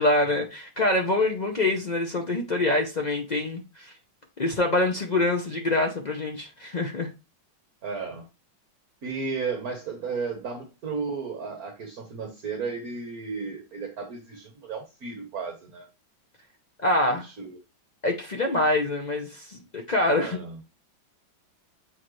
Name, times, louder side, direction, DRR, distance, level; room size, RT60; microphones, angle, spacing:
voice 1, 0.0-3.9 4.4-7.1 16.8-17.2 18.0-20.4, left 2 dB, 75° left, 0.4 m, -25 dB
voice 2, 7.8-8.3 9.0-15.9 17.1-17.6 20.2-20.6, right 5 dB, 55° right, 1.6 m, -34 dB
7.5 x 4.3 x 3.2 m
omnidirectional pair, 2.1 m